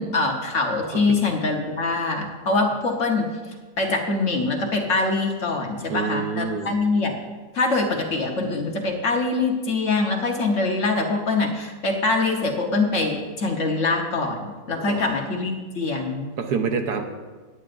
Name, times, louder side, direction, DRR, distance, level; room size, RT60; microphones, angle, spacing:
voice 1, 0.0-3.3 3.8-7.1 7.5-16.3, left 3 dB, 50° left, 2 dB, 1.4 m, -24 dB
voice 2, 5.9-6.8 14.9-15.1 16.4-17.1, right 5 dB, 70° right, 6 dB, 1.4 m, -27 dB
17.5 x 9.9 x 2.6 m, 1.4 s
omnidirectional pair, 1.8 m